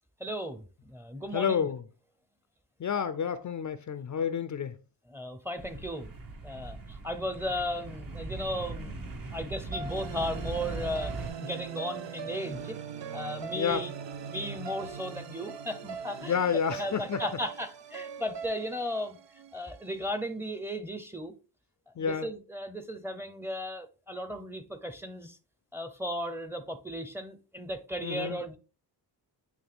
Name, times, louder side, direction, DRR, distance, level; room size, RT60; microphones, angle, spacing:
voice 1, 0.2-1.7 5.1-6.1 6.4-11.1 11.4-12.8 13.1-13.9 14.3-19.2 19.5-21.3 22.0-25.4 25.7-28.6, equal, 5° right, 0.7 m, -36 dB
voice 2, 1.3-1.8 2.8-4.7 13.5-13.8 16.2-17.2 22.0-22.3 28.0-28.4, left 7 dB, 45° left, 0.5 m, -29 dB
sound 1, 5.6-11.3, right 2 dB, 50° right, 1.3 m, -40 dB
sound 2, 9.7-20.0, right 7 dB, 75° right, 0.8 m, -41 dB
9.3 x 3.2 x 3.5 m
wide cardioid pair, 115°, 43 cm